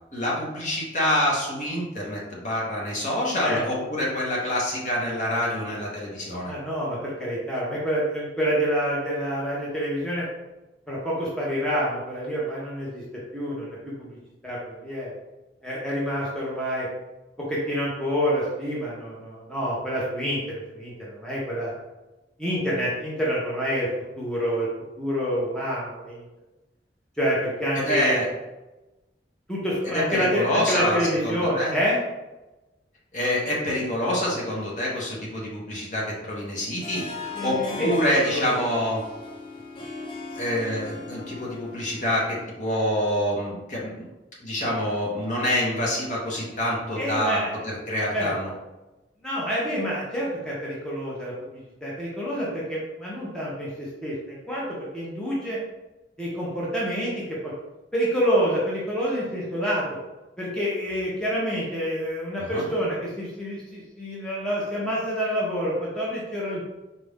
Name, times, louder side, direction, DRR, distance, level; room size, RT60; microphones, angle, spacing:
voice 1, 0.1-6.5 27.7-28.3 29.9-31.0 31.2-31.7 33.1-39.0 40.4-43.9 44.4-48.5 62.4-62.6, left 1 dB, 45° left, -4 dB, 1.1 m, -26 dB
voice 2, 6.5-10.3 10.9-13.0 13.3-14.2 14.4-15.1 15.6-16.9 17.5-21.8 22.4-23.9 24.2-24.7 25.0-26.2 27.2-28.2 29.5-32.0 37.3-38.6 46.9-47.6 48.1-48.3 49.2-51.3 51.8-55.6 56.2-57.5 57.9-59.8 60.4-66.6, equal, 5° left, -7 dB, 0.9 m, -27 dB
Harp, 36.8-42.3, left 3 dB, 30° left, 0.5 m, -38 dB
4.1 x 2.6 x 3.5 m, 1.0 s
head